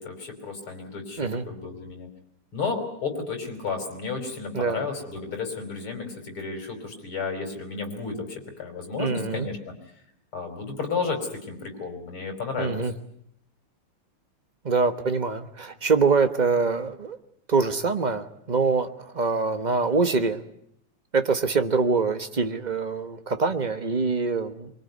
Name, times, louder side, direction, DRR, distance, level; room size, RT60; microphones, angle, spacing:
voice 1, 0.0-2.1 2.5-9.7 10.3-11.2 11.5-12.8, left 4 dB, 70° left, 5 dB, 5.8 m, -32 dB
voice 2, 4.5-4.9 9.0-9.5 12.6-12.9 14.6-17.2 17.5-20.4 21.1-24.7, right 4 dB, 25° right, 9 dB, 1.0 m, -24 dB
24.5 x 23.5 x 9.5 m, 0.72 s
omnidirectional pair, 2.4 m